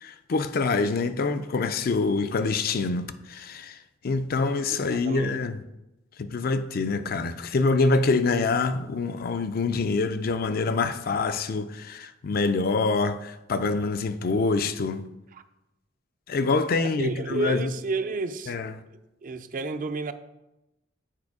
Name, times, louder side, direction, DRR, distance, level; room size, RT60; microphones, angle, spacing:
voice 1, 0.0-3.8 4.0-5.6 6.2-15.0 16.3-17.7 18.5-18.7, left 3 dB, 50° left, 0.4 m, -26 dB
voice 2, 4.7-5.4 17.0-18.5 19.2-20.1, right 3 dB, 45° right, 0.4 m, -31 dB
7.5 x 4.3 x 4.8 m
head